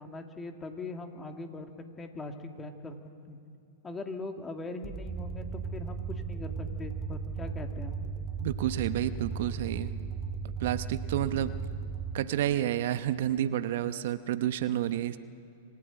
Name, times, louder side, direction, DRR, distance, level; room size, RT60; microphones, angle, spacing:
voice 1, 0.0-1.7 2.0-3.0 3.3-3.4 3.8-8.0, left 2 dB, 15° left, 5 dB, 2.2 m, -41 dB
sound 1, 4.8-12.1, right 5 dB, 15° right, 2.1 m, -36 dB
voice 2, 8.4-9.9 10.6-11.6 12.1-15.2, right 12 dB, 60° right, 12 dB, 0.8 m, -30 dB
26.5 x 14.5 x 9.1 m, 2.6 s
hypercardioid pair, 115°, 0 cm